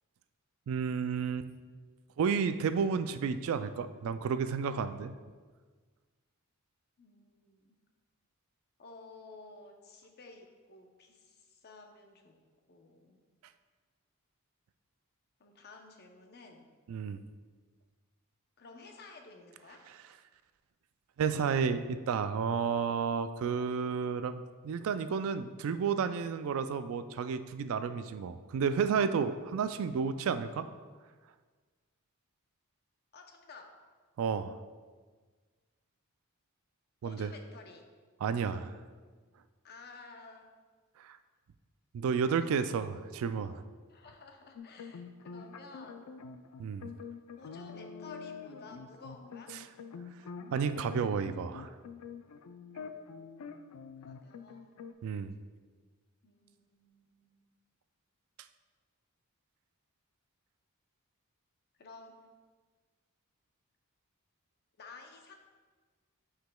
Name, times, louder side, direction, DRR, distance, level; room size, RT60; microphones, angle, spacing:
voice 1, 0.7-1.5 2.2-5.1 16.9-17.2 21.2-30.7 34.2-34.6 37.0-37.3 38.2-38.8 41.0-41.2 41.9-43.6 46.6-46.9 49.6-49.7 50.5-51.7 55.0-55.3, right 6 dB, 65° right, 11 dB, 0.3 m, -31 dB
voice 2, 7.0-7.7 8.8-12.4 12.7-13.2 15.4-16.7 18.6-19.9 33.1-33.8 37.0-37.8 39.6-40.5 43.9-46.1 47.4-49.6 54.0-54.7 56.2-57.4 61.8-62.3 64.8-65.4, left 3 dB, 50° left, 4 dB, 0.7 m, -53 dB
sound 1, 44.6-54.9, left 5 dB, 75° left, 0.4 m, -46 dB
9.2 x 4.9 x 2.2 m, 1.5 s
head